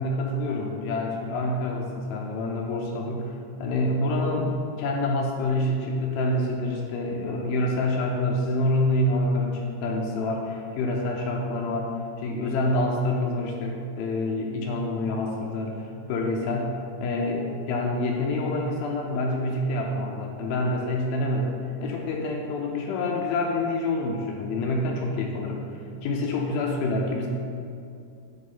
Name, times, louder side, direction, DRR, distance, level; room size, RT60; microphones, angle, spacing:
voice 1, 0.0-27.3, left 2 dB, 80° left, 0 dB, 2.4 m, -27 dB
10.0 x 3.6 x 4.1 m, 2.5 s
omnidirectional pair, 4.4 m